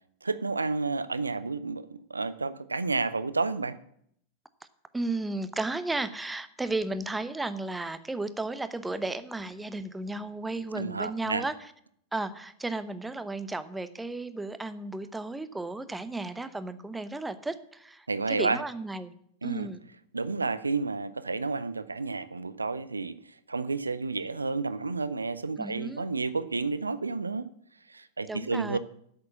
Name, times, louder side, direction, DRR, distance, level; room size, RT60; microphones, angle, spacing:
voice 1, 0.2-3.8 10.7-11.4 18.1-18.6 19.4-19.7 20.1-23.2 23.5-27.5 27.9-28.8, right 3 dB, 80° right, 15 dB, 0.4 m, -30 dB
voice 2, 4.9-11.7 12.1-19.1 19.4-19.8 25.6-26.0 28.3-28.8, right 2 dB, 10° right, 13 dB, 0.7 m, -34 dB
8.3 x 6.7 x 8.3 m, 0.70 s
figure-of-eight pair, 90°, 0 cm